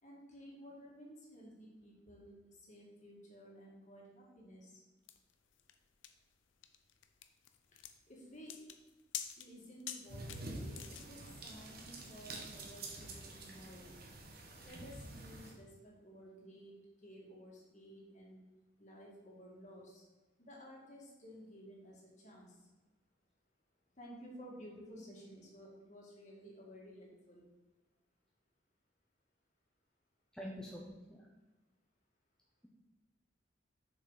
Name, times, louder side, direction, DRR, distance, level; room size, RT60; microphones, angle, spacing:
voice 1, 0.0-4.8 7.7-7.8 8.1-8.6 9.4-14.0 14.6-18.4 18.8-20.0 20.4-22.7 23.9-27.5, equal, 40° left, -3 dB, 2.1 m, -54 dB
sound 1, 5.1-11.3, left 10 dB, 85° left, 0.6 m, -48 dB
sound 2, 10.1-15.5, right 2 dB, 55° right, 1.3 m, -48 dB
voice 2, 30.3-31.3, equal, 5° left, -3 dB, 0.7 m, -46 dB
7.0 x 6.1 x 4.1 m, 1.2 s
head